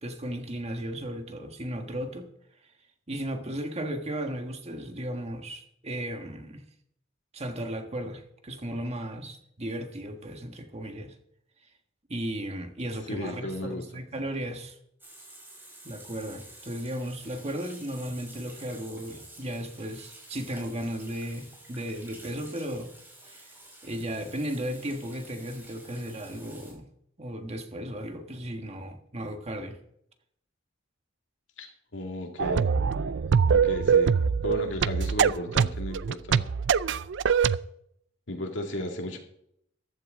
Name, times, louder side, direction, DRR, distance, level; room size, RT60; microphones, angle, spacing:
voice 1, 0.0-2.3 3.1-6.6 7.3-11.1 12.1-14.7 15.8-22.9 23.8-26.9 27.2-29.8, right 1 dB, 35° right, 5 dB, 1.5 m, -35 dB
voice 2, 13.1-13.8 31.6-32.7 33.5-34.1 34.4-36.4 38.3-39.2, left 1 dB, 70° left, 2 dB, 2.5 m, -34 dB
Water tap faucet / Sink (filling or washing), 15.0-26.7, right 1 dB, 10° right, 5.3 m, -50 dB
sound 1, 32.4-37.6, right 6 dB, 65° right, 0.4 m, -23 dB
14.5 x 12.0 x 3.8 m, 0.71 s
head